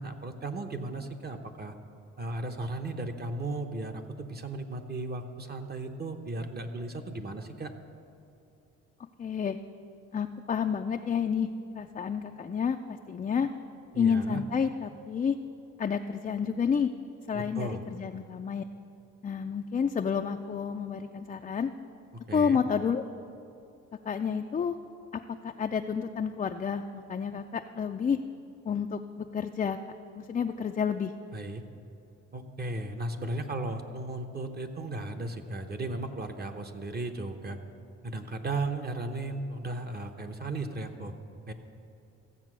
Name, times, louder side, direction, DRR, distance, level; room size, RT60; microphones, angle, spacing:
voice 1, 0.0-1.7 2.2-7.7 13.9-14.4 17.3-17.8 22.3-22.6 31.3-31.6 32.3-37.6 38.0-41.1 41.5-41.6, right 2 dB, 30° right, 5 dB, 0.9 m, -35 dB
voice 2, 9.2-9.6 10.1-11.5 11.7-12.8 13.1-13.5 14.0-15.4 15.8-16.9 17.3-18.6 19.2-21.7 22.3-23.0 24.1-24.8 25.1-28.2 28.6-29.8 30.2-31.1, left 6 dB, 25° left, 5 dB, 0.4 m, -30 dB
15.0 x 7.4 x 6.1 m, 2.7 s
cardioid pair, 90°, 30 cm